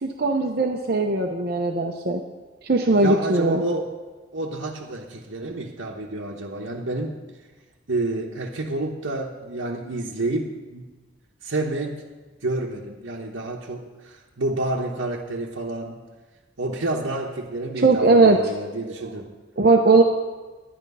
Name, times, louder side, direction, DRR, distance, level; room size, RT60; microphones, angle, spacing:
voice 1, 0.0-2.2 2.6-3.6 17.8-18.4 19.6-20.0, right 3 dB, 50° right, 2 dB, 0.8 m, -19 dB
voice 2, 2.9-3.9 4.3-7.2 7.9-10.9 11.4-12.0 12.4-16.0 16.6-19.3, right 2 dB, 75° right, -4 dB, 1.1 m, -29 dB
11.5 x 10.5 x 5.5 m, 1.3 s
head